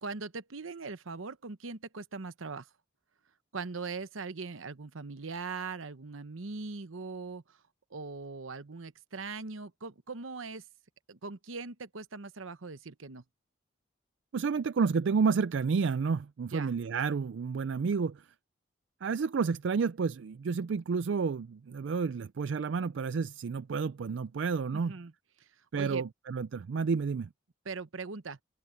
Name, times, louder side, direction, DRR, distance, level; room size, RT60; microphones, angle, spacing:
voice 1, 0.0-2.7 3.5-7.6 7.9-10.6 11.1-13.2 16.5-16.7 24.7-25.1 25.4-25.5 25.7-26.0 27.6-28.4, right 4 dB, 80° right, 1.0 m, -40 dB
voice 2, 14.3-18.3 19.0-24.9 25.7-27.3, right 5 dB, 65° right, 0.4 m, -30 dB
head